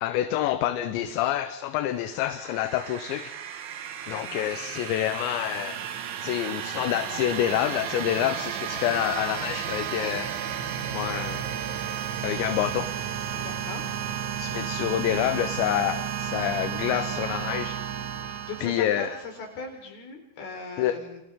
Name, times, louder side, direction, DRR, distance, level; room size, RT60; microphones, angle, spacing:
voice 1, 0.0-3.4 4.1-5.8 6.2-10.3 10.9-11.5 12.2-12.9 14.4-17.8 18.6-19.2 20.8-21.0, left 12 dB, 80° left, 10 dB, 3.1 m, -27 dB
sound 1, 1.9-19.5, right 9 dB, 80° right, 4.1 m, -33 dB
voice 2, 4.1-4.5 13.3-13.9 18.2-21.2, left 3 dB, 55° left, 3 dB, 5.9 m, -39 dB
29.5 x 26.5 x 3.7 m, 0.90 s
omnidirectional pair, 5.3 m